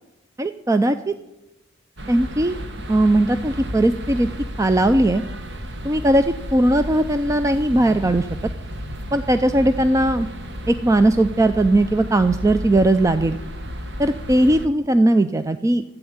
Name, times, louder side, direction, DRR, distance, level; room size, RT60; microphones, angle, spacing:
voice 1, 0.4-1.1 2.1-2.6 2.9-4.3 4.6-5.2 5.8-8.3 9.1-10.3 10.7-13.4 14.0-15.8, right 1 dB, 15° right, 9 dB, 0.3 m, -18 dB
sound 1, 2.0-14.7, equal, 60° right, 1.2 m, -33 dB
12.0 x 8.1 x 8.6 m, 0.97 s
head